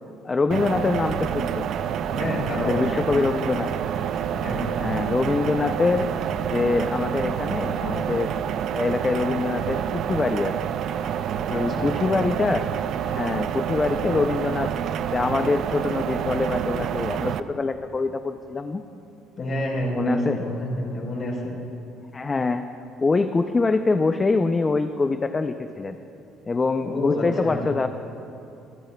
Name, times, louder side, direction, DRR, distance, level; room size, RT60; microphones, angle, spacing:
voice 1, 0.2-1.7 2.5-3.7 4.8-6.1 6.4-8.3 8.7-10.7 11.5-12.7 13.0-14.7 15.1-18.8 20.0-20.4 22.1-22.7 23.0-26.0 26.5-27.9, left 3 dB, 20° left, 8 dB, 0.4 m, -24 dB
sound 1, 0.5-17.4, right 9 dB, 50° right, 0.4 m, -28 dB
voice 2, 2.1-3.1 4.3-4.7 11.5-12.0 19.4-21.6 26.8-27.7, left 1 dB, 35° left, -1 dB, 3.8 m, -28 dB
25.0 x 17.0 x 2.2 m, 2.8 s
cardioid pair, 155°, 0 cm